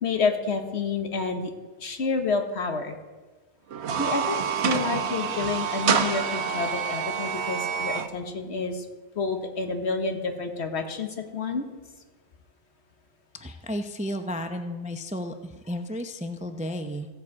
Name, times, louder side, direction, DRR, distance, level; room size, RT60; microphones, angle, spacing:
voice 1, 0.0-1.5 1.8-3.0 4.0-8.9 9.2-11.7, left 4 dB, 65° left, 5 dB, 1.4 m, -29 dB
sound 1, 3.7-8.1, right 7 dB, 70° right, 1.0 m, -27 dB
voice 2, 13.3-17.1, equal, 10° right, 6 dB, 0.4 m, -33 dB
15.5 x 7.6 x 4.7 m, 1.3 s
omnidirectional pair, 1.2 m